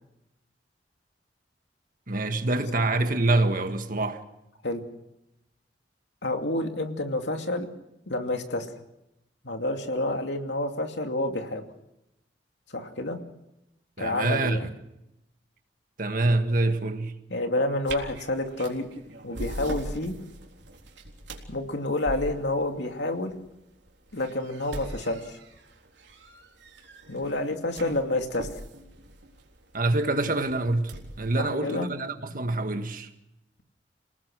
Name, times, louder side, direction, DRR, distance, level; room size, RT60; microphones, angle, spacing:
voice 1, 2.1-4.2 14.0-14.7 16.0-17.2 27.8-27.9 29.7-33.1, right 2 dB, 50° right, 1.7 m, -26 dB
voice 2, 6.2-7.7 8.1-8.7 9.4-11.6 12.7-13.2 14.0-14.7 17.3-18.8 19.2-20.1 21.5-23.3 24.1-25.4 27.1-28.5 31.4-31.9, left 2 dB, 75° left, 2.6 m, -29 dB
sound 1, 17.8-31.3, right 1 dB, 80° right, 3.8 m, -42 dB
28.5 x 19.0 x 6.2 m
head